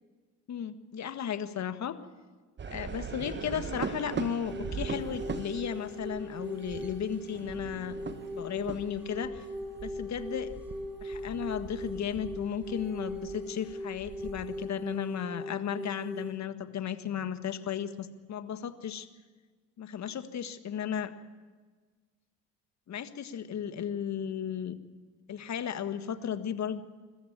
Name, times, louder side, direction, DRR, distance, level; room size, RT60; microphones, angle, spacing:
voice 1, 0.5-1.9 2.7-9.5 9.8-10.5 11.0-19.1 19.8-21.1 22.9-24.8 25.3-26.8, left 8 dB, 35° left, 10 dB, 1.6 m, -35 dB
sound 1, 2.6-14.7, right 6 dB, 25° right, 1.3 m, -41 dB
sound 2, 4.5-16.3, left 1 dB, 5° right, 5.7 m, -40 dB
22.5 x 14.0 x 8.8 m, 1.4 s
hypercardioid pair, 85°, 45 cm